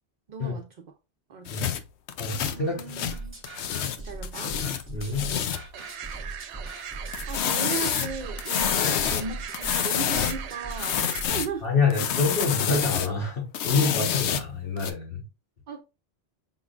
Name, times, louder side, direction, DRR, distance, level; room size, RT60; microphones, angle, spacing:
voice 1, 0.3-0.7 1.3-1.8 2.5-3.4 4.0-4.6 4.9-5.4 7.3-11.7 15.7-15.8, right 5 dB, 50° right, 0.6 m, -37 dB
sound 1, 1.5-4.0 4.2-5.7 7.1-9.3 9.5-10.4 10.7-11.6 11.9-13.1 13.5-14.9, left 9 dB, 80° left, 0.9 m, -28 dB
voice 2, 2.2-3.0 4.9-5.3 11.6-15.2, left 4 dB, 55° left, 1.5 m, -27 dB
sound 2, 3.1-11.3, right 2 dB, 10° right, 1.3 m, -40 dB
sound 3, 5.7-11.2, right 8 dB, 80° right, 0.8 m, -39 dB
5.7 x 3.6 x 2.4 m
omnidirectional pair, 1.1 m